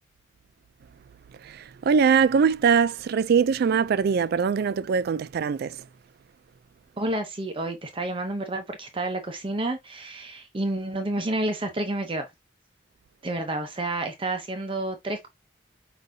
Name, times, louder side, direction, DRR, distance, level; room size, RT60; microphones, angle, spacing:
voice 1, 1.4-5.8, right 6 dB, 55° right, 0.3 m, -22 dB
voice 2, 7.0-12.3 13.2-15.3, right 2 dB, 30° right, 0.7 m, -30 dB
4.9 x 3.9 x 2.7 m
head